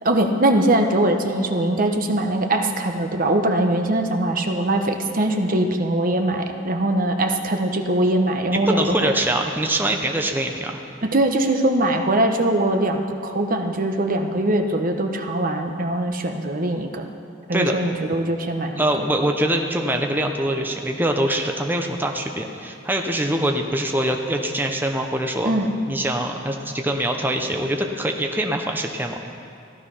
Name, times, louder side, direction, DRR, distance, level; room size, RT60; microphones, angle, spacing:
voice 1, 0.0-9.1 11.0-17.1 17.5-18.8 25.4-25.7, right 1 dB, 45° right, 4 dB, 1.0 m, -21 dB
voice 2, 8.5-10.8 17.5-17.7 18.8-25.5 25.9-29.2, right 1 dB, 10° right, 3 dB, 0.8 m, -23 dB
15.0 x 12.0 x 5.7 m, 2.4 s
head